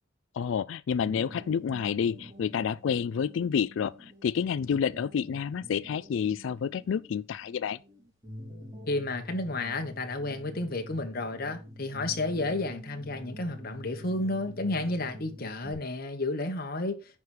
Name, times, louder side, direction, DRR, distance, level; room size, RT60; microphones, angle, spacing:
voice 1, 0.3-7.8, left 7 dB, 70° left, 0.3 m, -29 dB
sound 1, 0.9-15.7, left 1 dB, 20° right, 3.2 m, -46 dB
voice 2, 8.9-17.0, left 2 dB, 50° left, 1.4 m, -31 dB
9.5 x 4.9 x 4.5 m
head